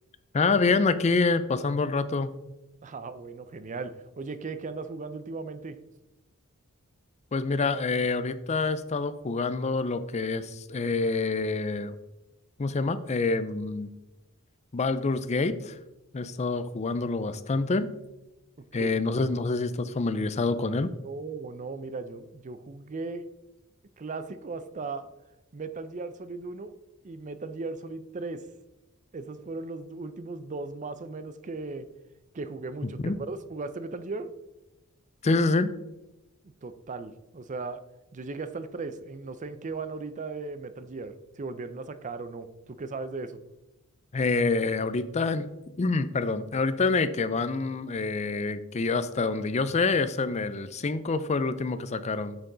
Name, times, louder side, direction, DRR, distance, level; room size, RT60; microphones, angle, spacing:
voice 1, 0.3-2.3 7.3-11.9 12.6-13.9 14.7-15.8 16.1-17.9 18.7-20.9 33.0-33.2 35.2-35.7 44.1-45.5 45.8-52.4, left 3 dB, 30° left, 13 dB, 0.4 m, -27 dB
voice 2, 2.8-5.8 18.8-18.9 21.0-23.3 24.0-25.1 25.5-26.7 27.0-28.5 29.1-31.9 32.3-34.3 36.6-37.8 38.1-43.4, right 3 dB, 35° right, 12 dB, 0.5 m, -37 dB
8.6 x 6.8 x 3.9 m, 0.96 s
head